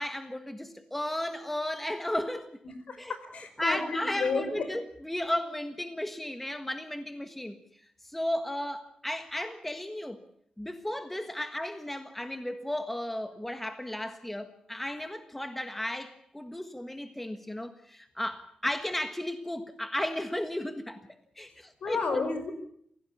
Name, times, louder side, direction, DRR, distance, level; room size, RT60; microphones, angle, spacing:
voice 1, 0.0-2.5 3.0-3.1 3.6-7.5 8.0-10.2 10.6-21.0 21.4-22.2, left 1 dB, 5° left, 8 dB, 1.5 m, -34 dB
voice 2, 2.6-4.7 21.8-22.5, left 4 dB, 70° left, 9 dB, 4.9 m, -32 dB
26.5 x 17.0 x 7.2 m, 0.68 s
wide cardioid pair, 170°, 2 cm